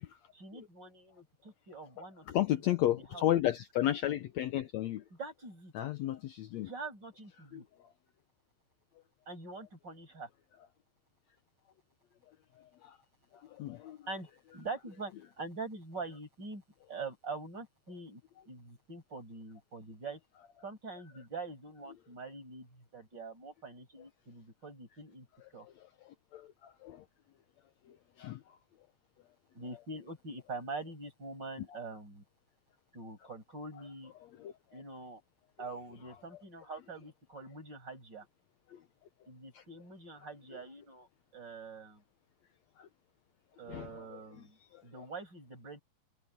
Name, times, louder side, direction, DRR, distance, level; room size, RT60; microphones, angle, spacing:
voice 1, 0.3-3.3 5.1-5.7 6.6-7.6 9.3-10.3 14.1-16.6 16.9-18.2 18.5-20.2 20.6-25.3 25.5-25.7 29.5-32.2 32.9-34.1 34.7-35.2 35.6-38.3 39.3-41.1 41.3-42.0 43.6-45.8, right 3 dB, 30° right, 7.1 m, -44 dB
voice 2, 2.3-5.0 5.8-6.7 7.5-7.6 13.6-14.0 26.3-26.4 26.8-27.0 28.2-28.4 43.7-43.9, left 13 dB, 70° left, 1.9 m, -31 dB
omnidirectional pair, 3.6 m